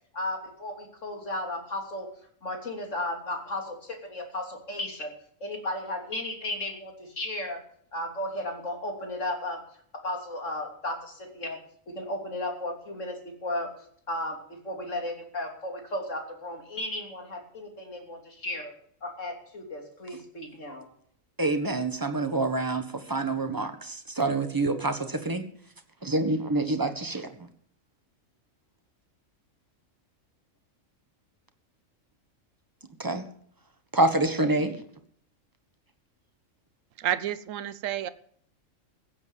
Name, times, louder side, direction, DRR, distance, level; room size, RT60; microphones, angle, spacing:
voice 1, 0.1-2.1 2.4-5.1 5.4-7.6 7.9-9.6 9.9-11.6 11.9-13.7 14.1-18.7 19.0-20.9, left 1 dB, 65° left, 3 dB, 3.5 m, -34 dB
voice 2, 21.4-25.4 26.0-27.3 33.0-33.2 33.9-34.8, right 2 dB, 15° right, 7 dB, 1.4 m, -27 dB
voice 3, 37.0-38.1, right 11 dB, 75° right, 14 dB, 1.2 m, -30 dB
16.0 x 8.9 x 7.3 m, 0.63 s
omnidirectional pair, 1.4 m